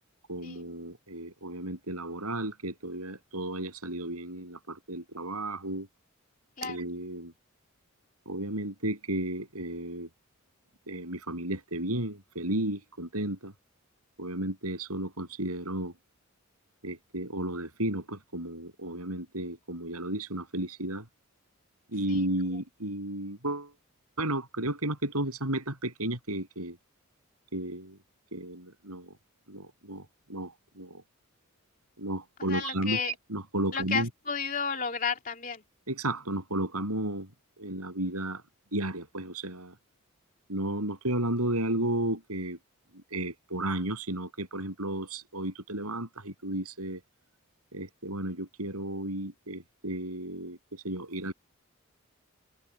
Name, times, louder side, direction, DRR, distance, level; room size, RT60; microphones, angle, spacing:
voice 1, 0.3-5.9 6.6-7.3 8.3-10.1 10.9-13.5 14.2-15.9 16.8-21.1 21.9-23.7 24.2-26.8 27.5-28.0 28.3-29.2 29.5-31.0 32.0-34.1 35.9-37.3 37.6-38.4 38.7-39.7 40.5-42.6 43.1-47.0 47.7-51.3, right 1 dB, 90° right, 7.9 m, -33 dB
voice 2, 32.5-33.1 33.7-35.6, left 5 dB, 40° left, 3.0 m, -32 dB
head